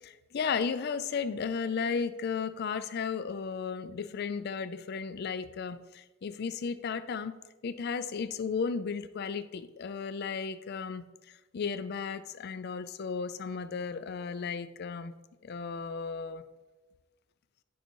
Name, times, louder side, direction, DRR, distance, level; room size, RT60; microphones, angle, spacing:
voice 1, 0.0-7.4 7.6-11.0 11.5-15.1 15.4-16.4, left 5 dB, 50° left, 12 dB, 0.4 m, -34 dB
11.5 x 5.6 x 3.0 m, 1.2 s
head